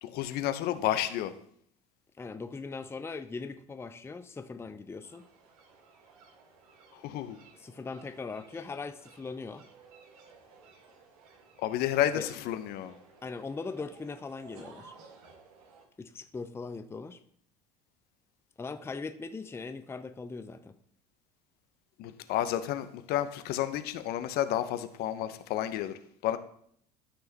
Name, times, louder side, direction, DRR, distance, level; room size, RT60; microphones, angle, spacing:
voice 1, 0.0-1.3 6.9-7.4 11.6-12.9 22.0-26.4, left 12 dB, 55° left, 0.7 m, -31 dB
voice 2, 2.2-5.3 7.6-9.6 12.2-12.3 13.2-14.9 16.0-17.2 18.6-20.7, left 4 dB, 10° left, 0.6 m, -40 dB
sound 1, 5.0-15.8, right 4 dB, 70° right, 1.5 m, -56 dB
12.5 x 5.6 x 2.9 m
hypercardioid pair, 70°, 20 cm